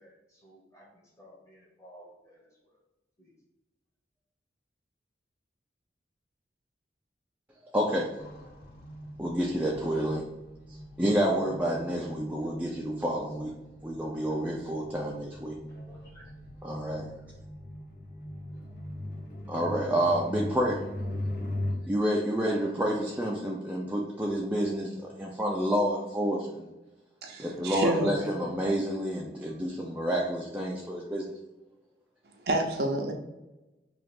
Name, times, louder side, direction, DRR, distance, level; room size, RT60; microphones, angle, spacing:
voice 1, 0.0-2.4 3.2-3.3 15.7-16.3, right 1 dB, 15° left, -3 dB, 1.0 m, -55 dB
voice 2, 7.7-8.1 9.2-10.2 11.0-13.5 13.8-15.5 16.6-17.0 19.5-20.8 21.8-26.7 27.4-31.3, equal, 10° right, -3 dB, 0.4 m, -29 dB
sound 1, 8.2-21.7, left 1 dB, 60° left, 0.9 m, -40 dB
voice 3, 27.2-28.2 32.5-33.1, right 1 dB, 60° right, 2 dB, 0.6 m, -28 dB
3.2 x 2.4 x 4.2 m, 1.0 s
head